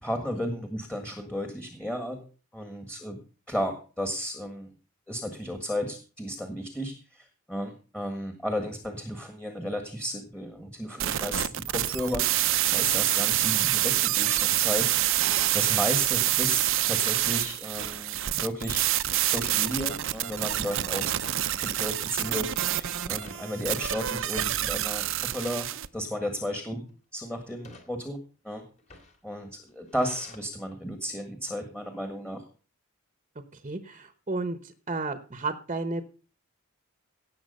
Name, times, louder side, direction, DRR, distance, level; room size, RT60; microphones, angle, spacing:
voice 1, 0.0-2.3 2.5-3.2 3.5-4.7 5.1-12.3 12.6-14.9 15.5-18.8 19.3-21.2 21.6-26.8 27.1-28.2 28.4-28.6 29.2-32.4, equal, 5° left, 5 dB, 1.7 m, -34 dB
sound 1, 11.0-25.9, right 13 dB, 65° right, 0.7 m, -27 dB
sound 2, 17.8-18.0 18.5-18.6 18.9-19.9 21.2-22.0 22.3-22.6 23.0-23.5 24.1-24.4 25.3-25.7 26.5-26.9 27.5-27.9 28.7-30.4, left 1 dB, 35° left, 2.9 m, -50 dB
voice 2, 33.5-36.0, right 3 dB, 30° right, 9 dB, 1.0 m, -32 dB
17.0 x 7.5 x 5.5 m, 0.37 s
head